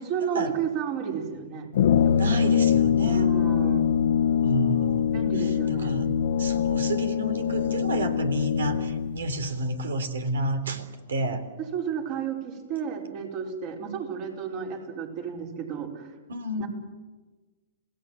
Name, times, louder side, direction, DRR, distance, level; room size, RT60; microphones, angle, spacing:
voice 1, 0.0-1.7 2.2-2.3 3.1-3.8 5.1-5.9 11.7-16.1 16.6-16.7, right 7 dB, 40° right, 2 dB, 5.3 m, -32 dB
Brass instrument, 1.7-9.2, left 8 dB, 70° left, 1.1 m, -23 dB
voice 2, 2.2-3.3 4.4-6.1 6.4-11.4 16.3-16.7, right 1 dB, 90° right, 11 dB, 3.5 m, -30 dB
28.0 x 18.5 x 7.8 m, 1.3 s
hypercardioid pair, 140°, 0 cm